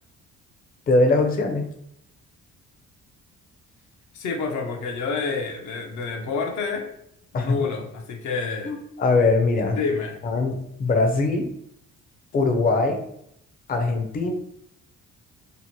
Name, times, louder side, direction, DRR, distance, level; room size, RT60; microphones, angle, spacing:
voice 1, 0.9-1.7 7.3-7.6 8.6-9.8 10.2-11.5 12.3-13.0 13.7-14.3, left 3 dB, 30° left, 3 dB, 0.5 m, -21 dB
voice 2, 4.1-6.9 7.3-8.7 9.6-10.2, left 4 dB, 75° left, 3 dB, 0.6 m, -28 dB
2.8 x 2.1 x 2.9 m, 0.75 s
cardioid pair, 90°, 30 cm